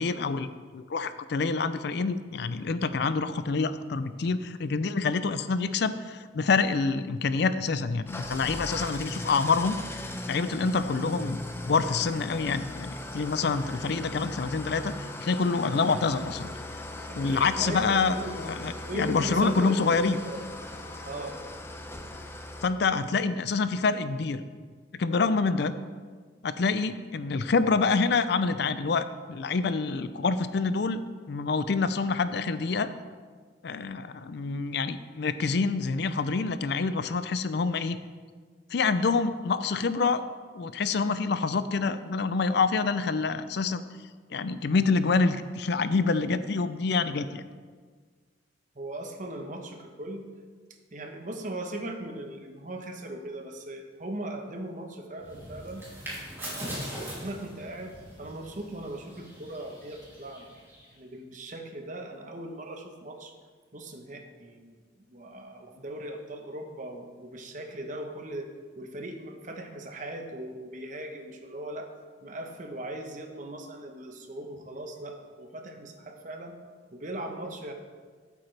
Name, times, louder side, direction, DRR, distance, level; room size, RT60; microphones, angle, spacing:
voice 1, 0.0-14.9 15.2-16.5 17.1-20.2 22.6-24.4 25.0-25.7 26.4-31.0 31.3-32.9 33.6-38.0 38.7-40.2 40.5-43.8 44.3-47.4, left 4 dB, 60° left, 12 dB, 0.4 m, -27 dB
Engine starting / Idling, 8.1-22.7, left 1 dB, 15° left, 0.6 m, -38 dB
voice 2, 17.1-18.3 18.9-20.4 21.1-21.4 48.8-50.2 50.9-55.9 56.4-60.5 60.9-63.3 63.7-68.5 68.8-71.9 72.2-76.6 76.9-77.7, right 1 dB, 40° right, 4 dB, 1.0 m, -39 dB
sound 1, 55.2-60.9, equal, 15° right, 2.8 m, -41 dB
12.0 x 8.4 x 3.3 m, 1.5 s
head